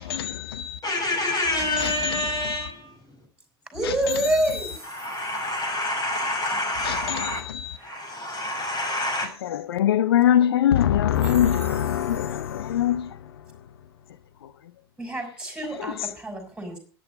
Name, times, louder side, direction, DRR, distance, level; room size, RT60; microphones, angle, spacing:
voice 1, 0.0-0.8 1.8-2.7 3.8-4.8 6.8-7.8 9.4-13.7 14.4-14.5 15.6-16.1, left 10 dB, 75° left, 0.6 m, -24 dB
voice 2, 0.8-2.9 4.9-7.4 7.8-9.3, left 1 dB, 30° left, 6.1 m, -27 dB
voice 3, 1.5-2.5 3.7-4.8 7.8-8.4 15.0-16.8, right 1 dB, 5° right, 6.2 m, -29 dB
13.5 x 11.0 x 5.4 m
figure-of-eight pair, 70°, 13 cm